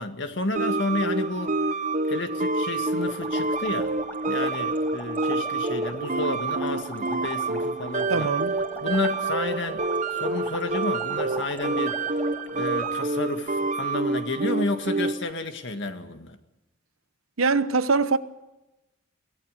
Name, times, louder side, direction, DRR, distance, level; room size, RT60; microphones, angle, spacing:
voice 1, 0.0-1.6 2.1-3.9 4.3-8.3 8.8-9.8 10.1-12.0 12.5-16.4, left 2 dB, 60° left, 1.9 m, -31 dB
sound 1, 0.5-15.3, right 3 dB, 35° right, 0.8 m, -27 dB
sound 2, 3.0-13.0, left 1 dB, 10° left, 2.4 m, -42 dB
voice 2, 8.1-8.6 17.4-18.2, right 4 dB, 85° right, 1.0 m, -22 dB
24.0 x 17.5 x 6.7 m
head